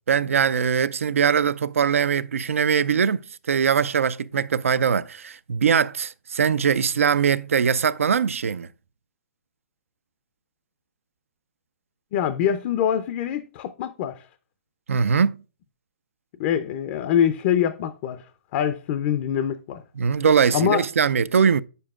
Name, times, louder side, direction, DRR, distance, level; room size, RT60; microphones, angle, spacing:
voice 1, 0.1-3.2 3.5-8.7 14.9-15.4 20.0-21.6, right 7 dB, 80° right, 0.4 m, -21 dB
voice 2, 12.1-14.3 16.4-19.8 20.5-20.8, left 9 dB, 40° left, 0.5 m, -24 dB
8.9 x 6.8 x 2.4 m
hypercardioid pair, 140°, 7 cm